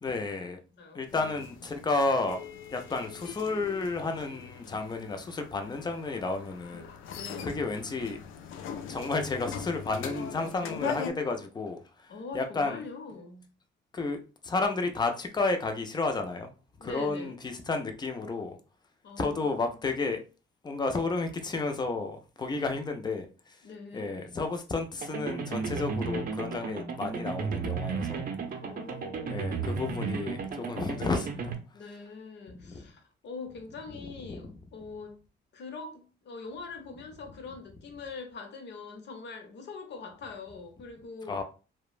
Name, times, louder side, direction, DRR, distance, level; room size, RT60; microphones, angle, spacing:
voice 1, 0.0-0.6 0.9-2.4 2.7-6.9 7.4-8.2 8.9-12.8 13.9-16.5 16.8-18.6 19.2-20.2 20.6-23.3 23.9-28.3 29.3-31.5 32.6-32.9 33.9-34.4 41.3-41.4, left 3 dB, 20° left, 0.5 m, -32 dB
voice 2, 0.7-1.4 7.1-7.5 12.1-13.5 16.8-17.4 19.0-19.5 22.5-22.7 23.6-24.4 28.6-30.3 31.7-35.2 35.5-41.4, left 4 dB, 60° left, 0.8 m, -43 dB
sound 1, 1.1-11.1, left 7 dB, 85° left, 0.4 m, -41 dB
sound 2, 25.0-31.5, right 5 dB, 45° right, 0.5 m, -34 dB
2.9 x 2.1 x 2.3 m
cardioid pair, 90°, 20 cm